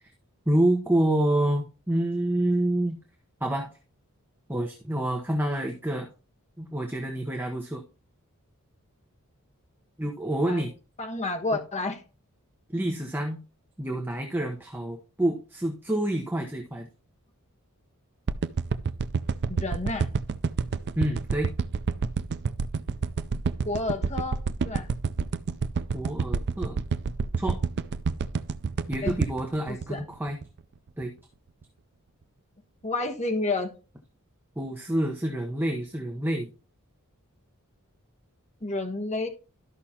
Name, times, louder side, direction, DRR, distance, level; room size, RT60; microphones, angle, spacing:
voice 1, 0.5-3.0 3.4-3.7 4.5-6.1 6.6-7.8 10.0-10.7 12.7-13.4 13.8-16.9 21.0-21.5 25.9-26.8 27.4-27.6 28.9-30.4 31.0-31.1 34.6-36.5, right 1 dB, 10° right, 0.9 m, -27 dB
voice 2, 11.0-12.0 19.5-20.1 23.6-24.9 29.0-29.2 29.7-30.0 32.8-33.7 38.6-39.3, left 2 dB, 30° left, 1.2 m, -30 dB
sound 1, 18.3-30.6 31.0-31.1, right 5 dB, 50° right, 0.4 m, -28 dB
13.0 x 5.7 x 2.9 m
head